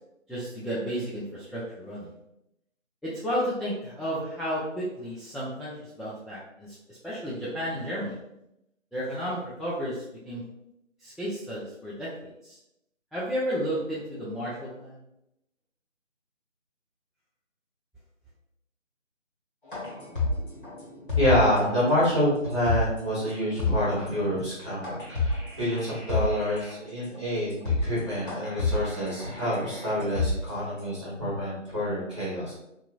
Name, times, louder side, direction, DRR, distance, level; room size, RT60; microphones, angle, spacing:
voice 1, 0.3-2.1 3.0-8.2 8.9-10.4 11.0-12.1 12.4-12.6 13.1-15.0, equal, ahead, -9 dB, 0.3 m, -32 dB
sound 1, 19.7-21.7 22.0-22.1 22.5-23.0 23.3-23.4 23.6-24.1 24.8-26.7 27.1-27.2 27.5-28.0 28.3-30.8, left 3 dB, 40° left, 1.2 m, -29 dB
voice 2, 21.1-32.5, equal, 25° right, -10 dB, 0.9 m, -27 dB
2.7 x 2.5 x 2.3 m, 0.85 s
figure-of-eight pair, 170°, 39 cm